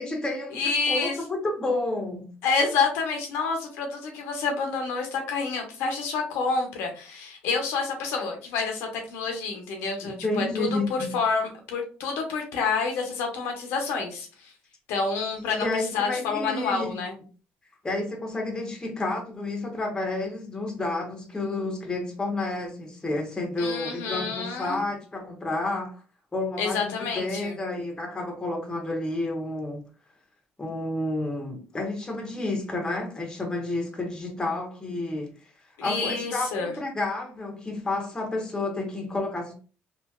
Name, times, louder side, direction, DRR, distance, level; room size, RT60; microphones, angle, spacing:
voice 1, 0.0-2.3 10.0-11.2 15.6-17.0 17.8-26.0 26.3-29.9 30.6-35.4 35.8-39.5, left 2 dB, 20° left, 1.0 m, -30 dB
voice 2, 0.5-1.2 2.4-14.5 14.9-17.1 23.6-24.8 26.6-27.5 35.8-36.7, left 4 dB, 90° left, 0.8 m, -28 dB
3.2 x 2.5 x 2.3 m
cardioid pair, 105°, 4 cm